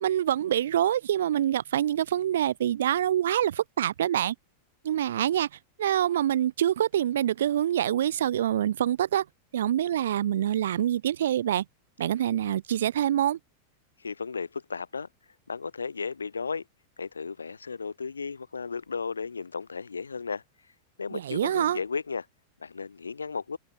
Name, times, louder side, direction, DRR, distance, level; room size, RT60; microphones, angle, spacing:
voice 1, 0.0-4.3 4.8-5.5 5.8-9.3 9.5-11.6 12.0-13.4 21.1-21.8, right 11 dB, 60° right, 0.6 m, -25 dB
voice 2, 14.0-15.1 15.5-16.6 17.0-20.4 21.0-22.3 22.6-23.6, left 5 dB, 75° left, 0.7 m, -34 dB
figure-of-eight pair, 90°, 0 cm